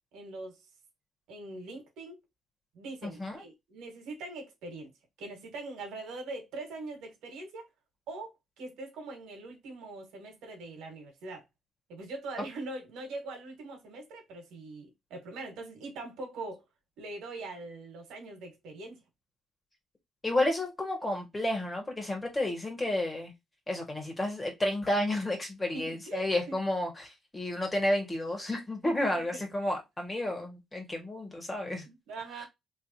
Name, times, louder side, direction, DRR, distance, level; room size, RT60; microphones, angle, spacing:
voice 1, 0.1-0.6 1.3-2.2 2.7-4.9 5.2-7.7 8.1-11.4 11.9-16.6 17.0-19.0 25.7-26.6 28.8-29.4 31.8-32.5, right 2 dB, 90° right, 1.6 m, -42 dB
voice 2, 3.0-3.4 20.2-23.3 23.7-31.8, left 1 dB, 20° left, 1.8 m, -31 dB
3.2 x 3.2 x 2.8 m
cardioid pair, 90°, 0 cm